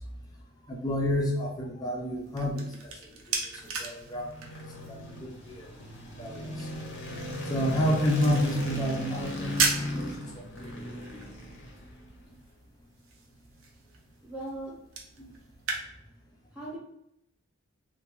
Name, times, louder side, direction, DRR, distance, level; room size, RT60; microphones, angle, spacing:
voice 1, 0.7-2.9 3.3-4.6 4.9-6.7 7.4-10.7 11.1-11.2 15.2-15.3, left 1 dB, 20° left, 0 dB, 0.4 m, -30 dB
sound 1, 2.0-15.8, right 4 dB, 80° right, 0.5 m, -38 dB
sound 2, 3.8-12.2, left 1 dB, 60° left, 0.7 m, -37 dB
voice 2, 14.2-14.8 16.5-16.8, right 1 dB, 5° right, -7 dB, 0.8 m, -38 dB
2.3 x 2.2 x 2.9 m, 0.79 s
head